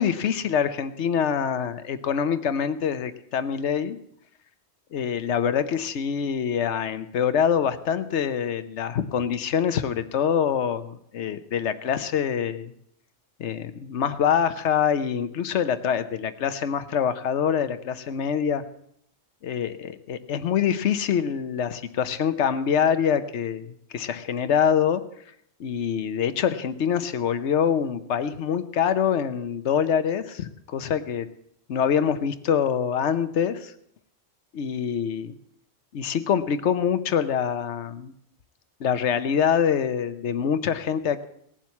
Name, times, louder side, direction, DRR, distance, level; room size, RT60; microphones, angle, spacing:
voice 1, 0.0-4.0 4.9-12.7 13.4-18.6 19.4-25.0 25.6-31.3 31.7-33.7 34.5-35.3 35.9-38.1 38.8-41.2, left 8 dB, 85° left, 11 dB, 1.1 m, -25 dB
17.5 x 7.5 x 8.3 m, 0.71 s
omnidirectional pair, 1.2 m